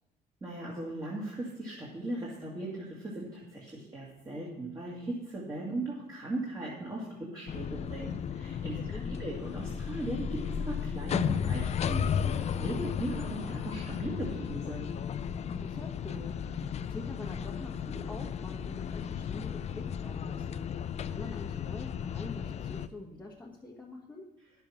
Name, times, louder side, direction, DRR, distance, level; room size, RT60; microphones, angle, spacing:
voice 1, 0.4-14.9, right 2 dB, 25° right, -4 dB, 2.2 m, -38 dB
sound 1, 7.5-22.9, left 8 dB, 40° left, 0.4 m, -34 dB
voice 2, 8.6-9.2 15.5-24.3, left 2 dB, 10° left, -3 dB, 1.3 m, -45 dB
10.5 x 6.9 x 5.8 m, 1.1 s
cardioid pair, 110°, 17 cm